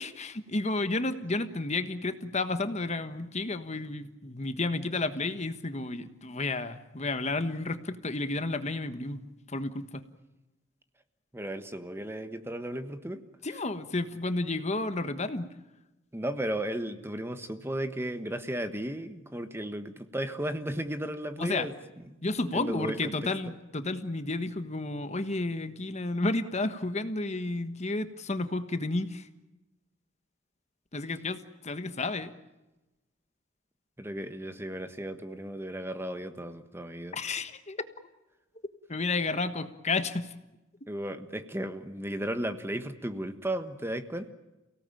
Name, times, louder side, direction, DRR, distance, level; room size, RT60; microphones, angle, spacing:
voice 1, 0.0-9.2 9.5-10.0 13.4-15.5 21.4-21.7 22.2-29.3 30.9-32.3 37.1-37.9 38.9-40.3, left 2 dB, 35° left, 10 dB, 1.3 m, -31 dB
voice 2, 11.3-13.2 16.1-21.7 22.5-23.3 34.0-37.2 40.9-44.3, right 1 dB, 15° right, 9 dB, 1.4 m, -35 dB
29.5 x 18.0 x 9.1 m, 1.0 s
head